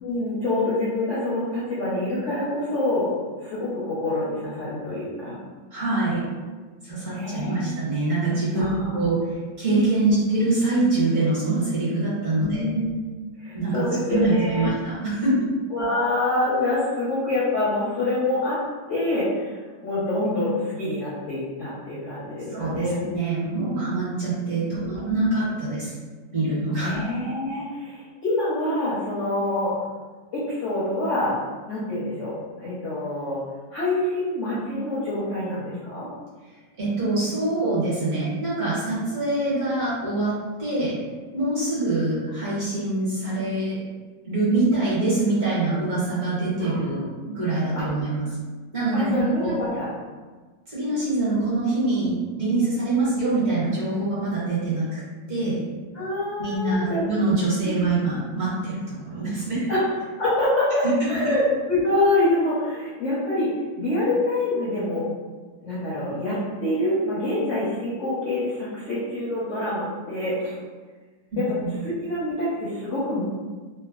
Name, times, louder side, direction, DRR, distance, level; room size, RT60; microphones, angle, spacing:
voice 1, 0.0-3.2 3.4-5.4 7.1-7.7 8.5-9.0 10.0-10.2 12.4-13.0 13.4-14.7 15.7-18.6 18.9-23.0 24.7-25.0 26.8-29.7 30.3-31.4 31.7-33.4 33.7-36.1 46.6-46.9 47.8-47.9 48.9-49.9 55.9-57.0 57.6-57.9 59.7-59.8 60.2-63.5 63.8-65.1 65.6-70.6 71.4-71.5 71.8-73.2, left 1 dB, 65° left, -9 dB, 0.7 m, -26 dB
voice 2, 5.7-6.2 6.8-8.7 8.9-12.7 13.5-15.5 22.5-26.0 26.3-27.0 36.8-40.9 41.3-43.8 44.3-48.3 48.7-49.6 50.7-55.0 55.3-55.6 56.4-59.7 60.8-60.9 71.3-71.7, right 2 dB, 50° right, -10 dB, 1.3 m, -24 dB
3.2 x 2.1 x 2.3 m, 1.4 s
omnidirectional pair, 2.0 m